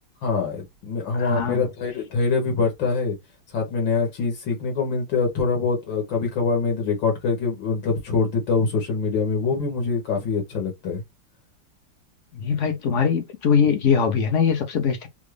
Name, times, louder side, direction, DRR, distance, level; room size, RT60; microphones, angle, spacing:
voice 1, 0.2-3.2 3.5-11.0, left 4 dB, 80° left, 1.9 m, -24 dB
voice 2, 1.1-1.7 12.3-15.1, left 6 dB, 60° left, 0.8 m, -22 dB
3.7 x 2.5 x 3.1 m
omnidirectional pair, 2.0 m